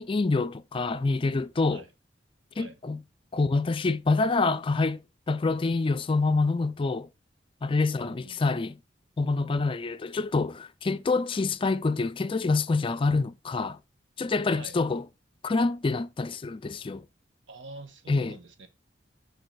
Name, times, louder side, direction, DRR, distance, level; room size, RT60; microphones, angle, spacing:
voice 1, 0.0-1.8 2.6-3.0 3.3-5.0 5.3-7.1 7.6-8.8 9.2-13.8 14.2-15.1 15.4-17.0 18.1-18.4, left 3 dB, 30° left, 0.4 m, -26 dB
voice 2, 7.9-8.6 14.5-14.8 17.5-18.7, right 2 dB, 85° right, 1.3 m, -46 dB
6.7 x 4.8 x 4.7 m
head